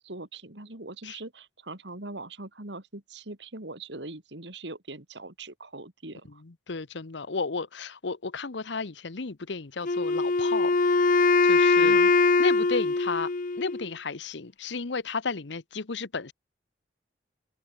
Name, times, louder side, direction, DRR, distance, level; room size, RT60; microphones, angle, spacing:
voice 1, 0.0-6.4 11.8-12.1, right 2 dB, 70° right, 3.4 m, -41 dB
voice 2, 6.4-10.7 11.4-12.0 12.4-13.3 13.6-16.3, left 4 dB, 75° left, 1.0 m, -33 dB
Wind instrument woodwind instrument, 9.9-13.9, left 3 dB, 50° left, 0.7 m, -22 dB
open air
head